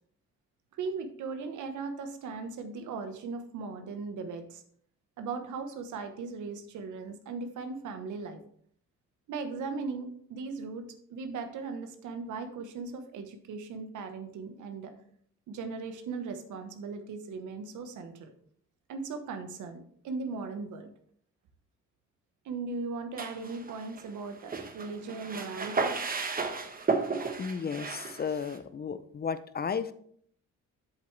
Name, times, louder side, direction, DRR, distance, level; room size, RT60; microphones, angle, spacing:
voice 1, 0.7-4.6 5.2-8.4 9.3-14.9 15.5-18.3 18.9-20.9 22.4-25.9, right 4 dB, 80° right, 7 dB, 1.2 m, -38 dB
sound 1, 23.2-24.2 24.5-28.6, right 4 dB, 30° right, 1.1 m, -33 dB
voice 2, 27.4-29.9, left 6 dB, 30° left, 13 dB, 0.5 m, -34 dB
7.9 x 7.2 x 3.3 m, 0.62 s
cardioid pair, 90°, 30 cm